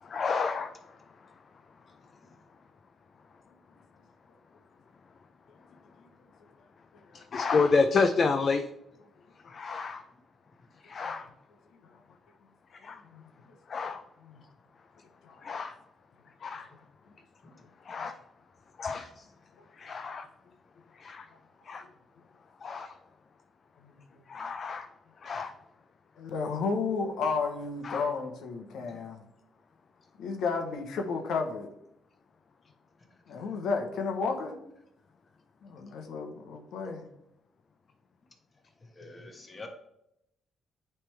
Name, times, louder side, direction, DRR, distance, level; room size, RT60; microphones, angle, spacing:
voice 1, 0.0-0.9 7.1-8.7 9.4-10.0 10.8-11.3 12.8-13.0 13.7-14.0 15.4-15.8 16.4-16.7 17.8-18.2 18.8-19.3 19.8-20.3 20.9-21.3 21.6-21.8 22.6-22.9 24.3-24.9 25.2-25.5 27.8-28.1, left 4 dB, 45° left, 6 dB, 0.5 m, -29 dB
voice 2, 26.2-29.2 30.2-31.7 33.3-34.5 35.6-37.1, left 4 dB, 75° left, 3 dB, 1.0 m, -32 dB
voice 3, 38.9-39.7, left 3 dB, 25° left, 4 dB, 1.3 m, -46 dB
8.7 x 3.4 x 3.3 m, 0.80 s
cardioid pair, 90°, 0 cm